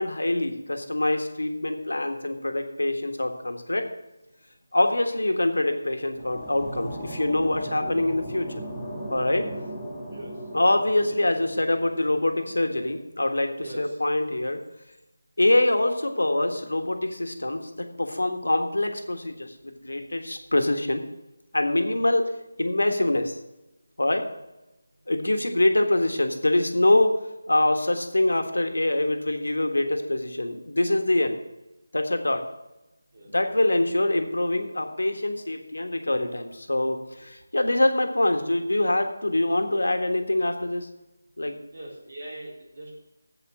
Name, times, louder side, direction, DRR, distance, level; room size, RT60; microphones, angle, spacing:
voice 1, 0.0-3.9 4.7-8.6 9.1-9.5 10.5-13.5 13.8-14.6 15.4-21.0 21.5-22.3 22.6-23.4 24.0-24.2 25.1-27.1 27.5-31.4 31.9-32.4 33.3-40.9 41.4-41.6, left 1 dB, 70° left, 5 dB, 1.5 m, -24 dB
sound 1, 5.8-12.9, right 1 dB, 10° left, 2.9 m, -38 dB
voice 2, 13.6-14.0 21.6-21.8 33.1-33.3 37.1-37.3 41.7-42.9, right 1 dB, 50° right, -3 dB, 3.9 m, -41 dB
8.4 x 7.9 x 7.4 m, 0.96 s
figure-of-eight pair, 160°, 0 cm